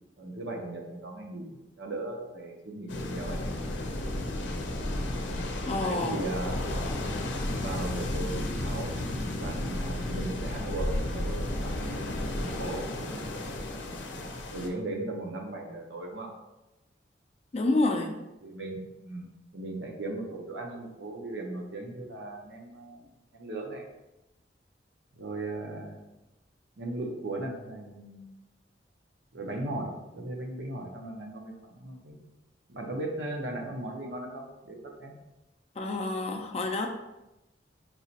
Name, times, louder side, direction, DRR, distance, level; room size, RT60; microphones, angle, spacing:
voice 1, 0.2-3.4 5.8-6.5 7.6-8.9 9.4-12.8 14.5-16.3 18.4-23.0 23.3-23.9 25.1-26.0 26.8-28.3 29.3-32.2 32.7-35.1, right 2 dB, 80° right, 1 dB, 0.8 m, -37 dB
sound 1, 2.9-14.7, left 1 dB, 80° left, 0.6 m, -33 dB
voice 2, 5.7-6.2 17.5-18.1 35.8-36.9, left 2 dB, 35° left, 4 dB, 0.4 m, -28 dB
4.8 x 2.9 x 2.7 m, 0.97 s
head